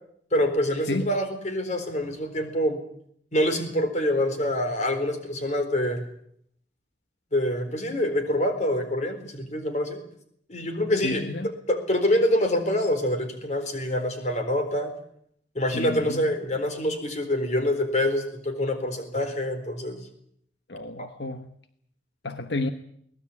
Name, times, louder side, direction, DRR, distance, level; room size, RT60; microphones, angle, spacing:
voice 1, 0.3-2.8 3.3-6.0 7.3-10.0 10.5-11.2 11.7-14.9 15.5-20.0 21.0-21.1, left 1 dB, 40° left, 4.2 m, -26 dB
voice 2, 11.0-11.5 15.7-16.2 20.7-21.5 22.2-22.7, left 2 dB, 75° left, 1.2 m, -31 dB
23.0 x 19.0 x 8.6 m
head